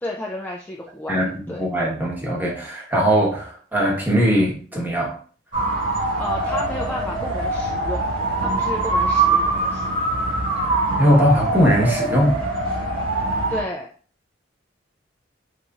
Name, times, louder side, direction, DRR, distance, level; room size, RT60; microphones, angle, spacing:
voice 1, 0.0-1.6 5.9-8.0 8.4-9.9 13.5-13.9, left 1 dB, 10° left, -1 dB, 0.3 m, -32 dB
voice 2, 1.1-5.1 11.0-12.4, equal, 10° right, -3 dB, 0.9 m, -20 dB
sound 1, 5.5-13.6, right 2 dB, 65° right, 1.6 m, -23 dB
3.9 x 3.0 x 2.3 m, 0.43 s
head